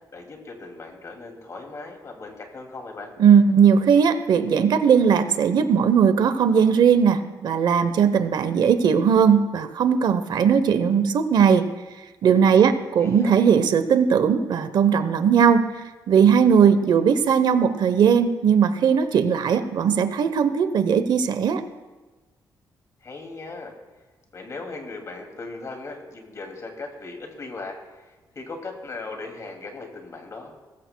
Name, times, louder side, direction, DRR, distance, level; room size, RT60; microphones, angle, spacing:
voice 1, 0.1-3.1 13.0-13.4 23.0-23.7 24.3-30.5, left 3 dB, 40° left, 3 dB, 2.4 m, -38 dB
voice 2, 3.2-11.7 12.2-15.7 16.1-21.6, right 7 dB, 65° right, 11 dB, 0.8 m, -18 dB
20.0 x 14.5 x 2.2 m, 1.2 s
cardioid pair, 125°, 8 cm